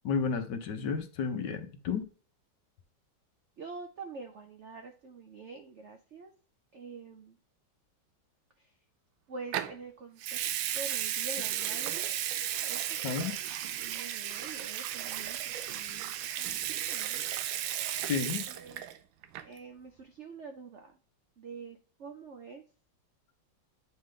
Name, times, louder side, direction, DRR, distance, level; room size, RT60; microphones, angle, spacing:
voice 1, 0.0-2.1 13.0-13.4 18.1-18.4, left 6 dB, 65° left, 1.4 m, -32 dB
voice 2, 3.6-6.3 6.7-7.4 8.6-8.7 9.3-12.1 12.7-13.0 13.8-17.2 18.5-18.8 19.4-20.9 21.4-22.6, right 4 dB, 70° right, 0.6 m, -46 dB
Water tap faucet / Sink (filling or washing) / Liquid, 9.5-9.8 10.2-19.0 19.2-19.6, right 11 dB, 85° right, 1.4 m, -34 dB
8.5 x 3.7 x 3.2 m
omnidirectional pair, 2.1 m